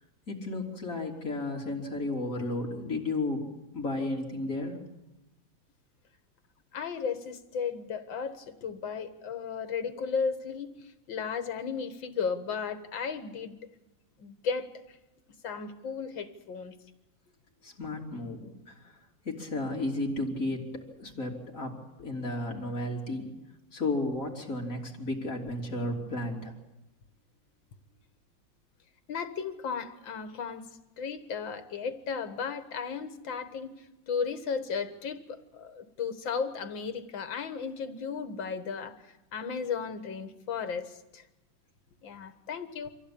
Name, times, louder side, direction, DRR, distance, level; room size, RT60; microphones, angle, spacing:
voice 1, 0.3-3.5 3.7-4.8 17.6-19.0 19.2-23.3 23.7-26.5, left 2 dB, 45° left, -1 dB, 3.6 m, -33 dB
voice 2, 6.7-13.6 14.2-15.0 15.4-16.7 29.1-30.7 31.0-33.7 34.1-41.2 42.0-42.9, left 6 dB, 80° left, 9 dB, 2.2 m, -35 dB
25.0 x 15.5 x 8.6 m, 0.98 s
omnidirectional pair, 2.0 m